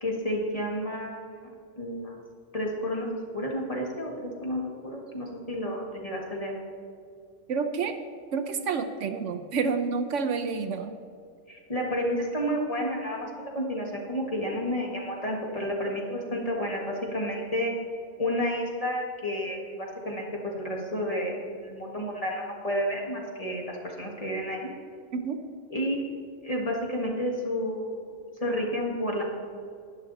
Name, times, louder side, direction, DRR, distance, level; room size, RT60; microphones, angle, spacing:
voice 1, 0.0-1.5 1.8-2.2 2.5-3.1 3.3-6.5 11.5-17.7 18.2-24.7 25.7-26.1 26.4-28.1 28.4-29.2, equal, 30° left, -1 dB, 1.8 m, -31 dB
voice 2, 7.5-7.9 8.3-10.9 25.1-25.4, right 5 dB, 75° right, 7 dB, 1.0 m, -29 dB
11.0 x 10.5 x 4.0 m, 2.3 s
omnidirectional pair, 1.3 m